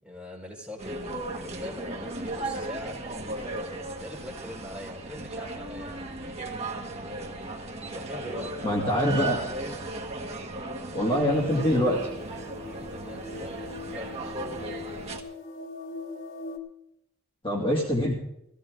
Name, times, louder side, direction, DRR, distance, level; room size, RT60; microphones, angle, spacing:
voice 1, 0.0-6.1 7.8-8.5 12.6-14.7, left 1 dB, 5° right, -4 dB, 4.6 m, -43 dB
sound 1, 0.8-15.2, right 2 dB, 30° right, 1.5 m, -36 dB
voice 2, 8.6-9.4 10.9-12.0 17.4-18.1, equal, 25° left, -3 dB, 2.4 m, -24 dB
sound 2, 11.3-16.6, left 3 dB, 70° left, 2.1 m, -41 dB
16.0 x 15.5 x 3.7 m, 0.80 s
head